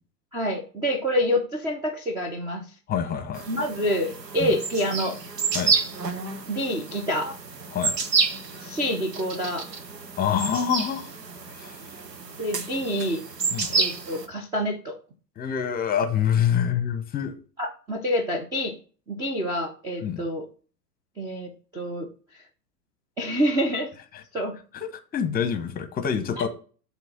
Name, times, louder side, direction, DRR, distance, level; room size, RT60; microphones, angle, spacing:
voice 1, 0.3-2.7 3.5-5.2 6.5-7.4 8.6-9.7 12.4-13.2 13.7-15.0 17.6-18.7 19.1-20.5 21.2-22.1 23.2-23.9 24.3-24.5, equal, 10° right, 3 dB, 0.4 m, -27 dB
voice 2, 2.9-3.4 4.4-4.5 5.5-5.7 7.7-8.0 10.2-11.1 11.5-11.8 13.5-13.7 15.4-17.3 20.0-20.2 24.1-24.2 24.7-26.5, left 8 dB, 20° left, 9 dB, 0.9 m, -26 dB
sound 1, 3.3-14.3, right 4 dB, 85° right, 1.0 m, -30 dB
7.7 x 3.0 x 6.0 m, 0.39 s
figure-of-eight pair, 95°, 49 cm